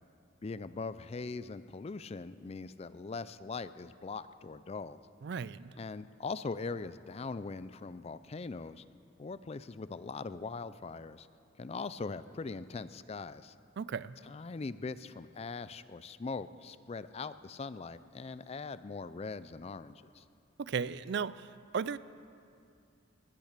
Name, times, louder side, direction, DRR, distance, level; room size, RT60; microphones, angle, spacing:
voice 1, 0.4-5.0 5.8-8.8 9.2-11.3 11.6-13.5 14.3-20.2, left 4 dB, 30° left, 14 dB, 0.4 m, -41 dB
voice 2, 5.2-5.7 13.8-14.2 20.6-21.5 21.7-22.0, right 6 dB, 60° right, 17 dB, 0.4 m, -35 dB
20.5 x 10.5 x 6.6 m, 2.5 s
head